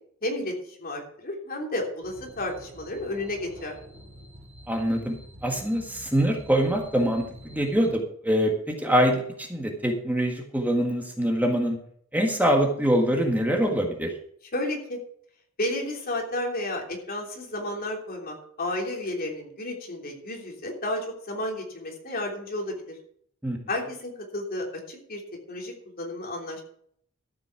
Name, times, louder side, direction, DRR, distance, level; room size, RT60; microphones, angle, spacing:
voice 1, 0.2-0.5 0.8-3.8 14.5-15.0 15.6-23.0 23.7-25.2 25.5-26.6, left 1 dB, 45° left, 1 dB, 3.2 m, -32 dB
sound 1, 2.0-7.9, equal, 35° right, 4.6 m, -47 dB
voice 2, 4.7-5.1 5.4-11.8 12.1-14.1 23.4-23.6, equal, 10° right, 1 dB, 1.6 m, -24 dB
13.5 x 7.5 x 5.8 m, 0.63 s
head